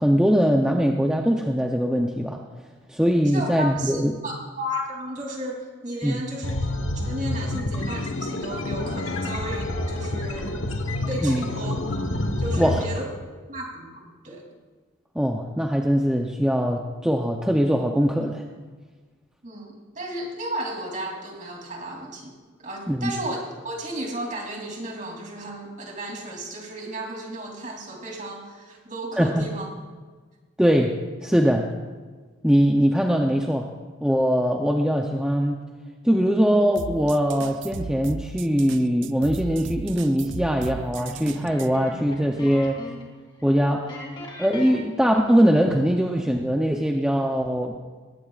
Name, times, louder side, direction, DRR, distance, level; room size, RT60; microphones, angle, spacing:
voice 1, 0.0-2.4 2.9-4.2 6.0-6.2 11.2-11.5 12.6-12.8 15.1-18.4 22.9-23.1 29.2-29.4 30.6-31.7 32.4-33.7 34.0-35.6 36.0-42.8 43.4-43.9 44.4-47.7, equal, 5° right, 1 dB, 0.6 m, -21 dB
voice 2, 3.2-6.5 6.9-10.6 11.1-11.7 12.4-13.1 13.5-13.9 14.2-14.4 19.4-22.3 22.6-29.7, right 1 dB, 40° right, 0 dB, 3.1 m, -34 dB
sound 1, 6.4-12.8, left 1 dB, 80° left, 1.2 m, -28 dB
sound 2, 36.8-41.7, right 4 dB, 65° right, 0.5 m, -36 dB
sound 3, 40.9-43.1 43.4-43.5 43.9-45.5, left 1 dB, 25° left, 2.5 m, -40 dB
20.0 x 17.0 x 2.5 m, 1.4 s
head